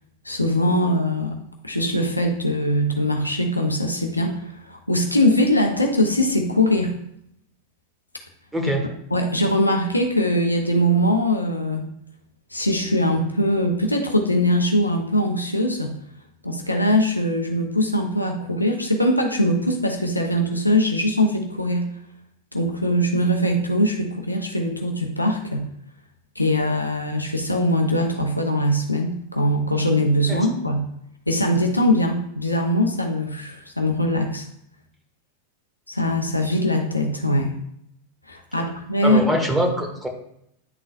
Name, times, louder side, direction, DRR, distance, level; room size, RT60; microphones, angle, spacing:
voice 1, 0.2-1.4 1.6-6.9 9.1-11.9 12.5-16.0 16.4-21.8 22.5-25.7 26.4-30.9 31.3-34.5 35.9-37.5 38.3-39.2, equal, 85° left, 3 dB, 0.7 m, -21 dB
voice 2, 8.5-8.8 30.3-30.4 38.6-38.7 39.0-40.1, right 1 dB, 5° right, 1 dB, 1.3 m, -23 dB
9.8 x 3.8 x 2.5 m, 0.74 s
figure-of-eight pair, 90°, 0 cm